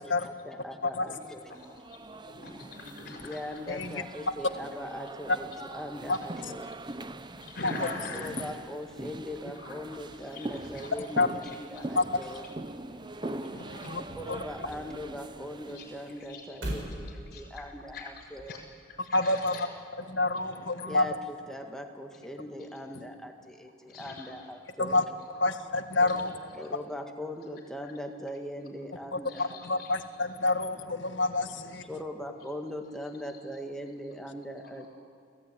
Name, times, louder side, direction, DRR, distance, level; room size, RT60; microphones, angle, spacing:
voice 1, 0.2-1.4 3.2-6.7 8.2-12.4 14.1-18.6 20.8-25.0 26.5-29.6 31.9-34.9, equal, 5° left, 3 dB, 1.8 m, -40 dB
voice 2, 0.8-3.8 6.1-6.2 7.0-8.3 9.5-11.1 11.4-11.8 12.4-12.9 13.2-14.4 15.7-16.6 16.9-18.6 19.0-19.8 20.3-20.6 22.1-22.2 22.6-23.0 23.9-24.5 25.3-25.5 26.0-26.7 27.8-27.9 28.3-28.4 29.2-30.0 30.3-30.4 30.8-30.9 33.0-33.6 34.1-34.2 34.6-34.9, left 4 dB, 50° left, 1 dB, 6.2 m, -47 dB
sound 1, 1.5-16.2, right 2 dB, 25° right, 0.7 m, -42 dB
sound 2, 13.8-18.6, equal, 85° right, 7.1 m, -43 dB
voice 3, 19.1-19.5 20.1-21.1 24.8-25.0 25.4-26.3 29.1-31.8, left 2 dB, 85° left, 8 dB, 1.6 m, -27 dB
29.5 x 16.0 x 9.6 m, 2.3 s
head